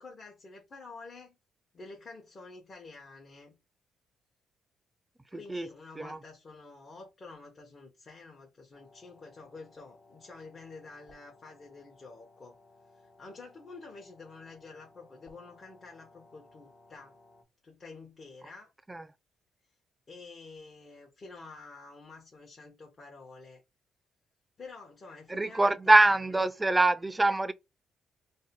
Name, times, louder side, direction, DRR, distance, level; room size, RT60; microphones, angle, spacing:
voice 1, 0.0-1.4 1.7-3.6 5.3-12.6 12.9-17.2 17.6-18.7 20.1-23.6 24.6-26.0, left 3 dB, 40° left, 0.8 m, -49 dB
sound 1, 8.7-17.4, left 2 dB, 60° left, 1.1 m, -60 dB
voice 2, 25.3-27.5, right 2 dB, 15° right, 0.3 m, -24 dB
2.6 x 2.2 x 4.0 m
cardioid pair, 90°, 0 cm